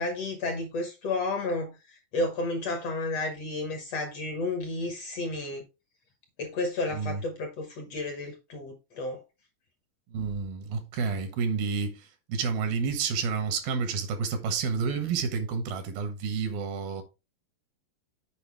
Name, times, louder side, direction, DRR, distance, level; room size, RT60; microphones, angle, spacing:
voice 1, 0.0-5.6 6.4-9.2, left 2 dB, 60° left, 1.7 m, -32 dB
voice 2, 6.9-7.2 10.1-17.0, right 5 dB, 90° right, 3.3 m, -30 dB
8.2 x 5.0 x 3.4 m
omnidirectional pair, 4.1 m